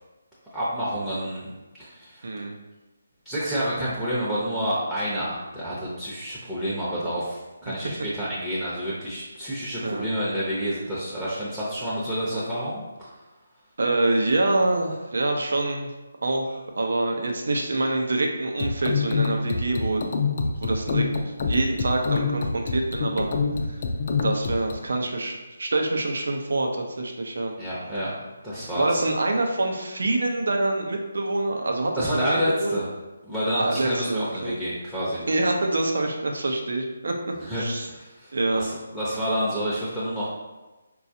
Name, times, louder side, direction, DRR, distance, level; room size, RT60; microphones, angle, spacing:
voice 1, 0.5-1.5 1.8-2.3 3.2-13.1 27.6-28.2 28.4-29.0 32.0-32.9 33.2-35.2 37.4-37.6 37.9-40.3, equal, 5° right, -11 dB, 0.7 m, -29 dB
voice 2, 2.2-2.6 9.8-10.1 13.8-15.9 16.2-20.0 20.4-23.3 23.7-23.8 24.2-27.5 28.7-32.8 33.6-34.6 35.3-37.2 37.5-37.9 38.3-38.7, right 2 dB, 70° right, 2 dB, 0.5 m, -26 dB
sound 1, 18.6-24.8, left 4 dB, 45° left, 0.4 m, -26 dB
4.2 x 2.3 x 2.7 m, 1.1 s
figure-of-eight pair, 155°, 0 cm